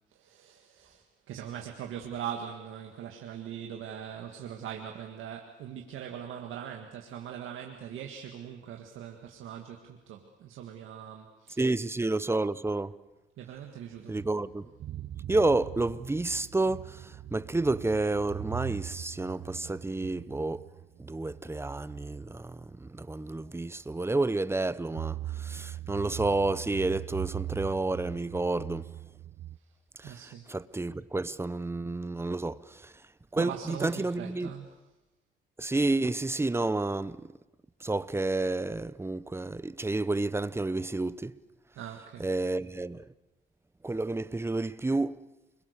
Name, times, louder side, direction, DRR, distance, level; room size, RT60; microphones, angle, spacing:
voice 1, 0.1-11.7 13.4-14.2 30.0-30.5 33.4-34.7 41.7-42.3, right 9 dB, 85° right, 1.9 m, -41 dB
voice 2, 11.6-12.9 14.1-14.7 15.3-20.6 21.0-28.9 30.0-30.2 30.5-32.9 33.3-34.5 35.6-37.3 37.8-41.3 42.2-43.0 43.8-45.1, right 2 dB, 10° right, 0.8 m, -30 dB
sound 1, 14.2-22.7 23.1-23.2 24.9-29.6, right 13 dB, 60° right, 0.7 m, -41 dB
29.5 x 22.0 x 6.7 m
cardioid pair, 90°, 20 cm